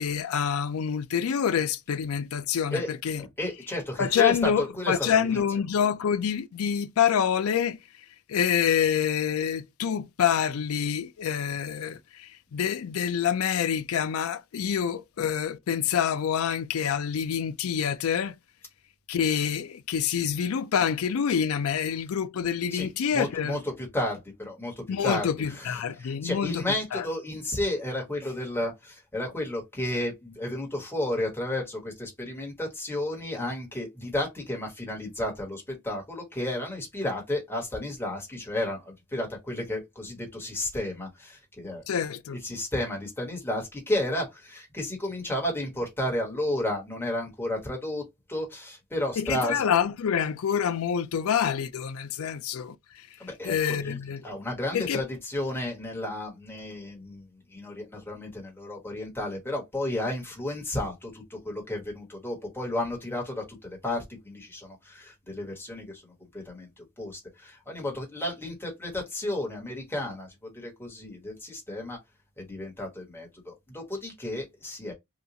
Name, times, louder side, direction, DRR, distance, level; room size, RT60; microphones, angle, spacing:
voice 1, 0.0-3.2 4.0-7.8 8.3-18.3 19.1-23.6 24.9-26.7 26.9-27.1 41.9-42.4 49.2-53.1 53.4-54.2 54.7-55.0, left 8 dB, 75° left, 0.4 m, -27 dB
voice 2, 3.2-5.6 21.8-21.9 22.7-41.8 42.3-48.0 48.3-49.7 53.2-72.0 72.4-74.9, left 1 dB, 10° left, 1.2 m, -32 dB
2.9 x 2.3 x 3.8 m
head